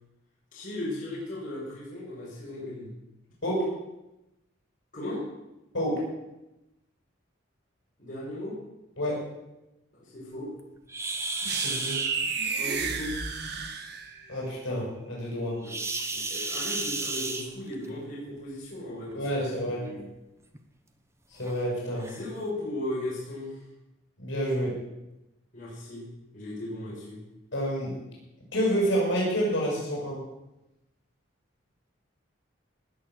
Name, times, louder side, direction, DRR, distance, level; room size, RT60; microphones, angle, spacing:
voice 1, 0.5-2.9 4.9-5.2 8.0-8.5 9.9-10.5 12.6-13.1 15.6-15.7 16.1-20.0 22.1-23.6 25.5-26.1 26.3-27.2, left 1 dB, 40° left, -7 dB, 6.7 m, -36 dB
sound 1, 10.9-12.1 15.6-17.9 19.1-19.3 19.9-20.0 20.5-20.6 21.4-21.5 22.0-22.2, right 3 dB, 15° right, 1.0 m, -32 dB
sound 2, 11.5-14.3, right 5 dB, 55° right, 1.6 m, -32 dB
voice 2, 11.6-12.0 14.3-15.6 19.1-19.9 21.3-22.1 24.2-24.8 27.5-28.0 28.5-30.2, equal, 65° left, -4 dB, 7.2 m, -28 dB
19.5 x 7.1 x 7.9 m, 0.95 s
head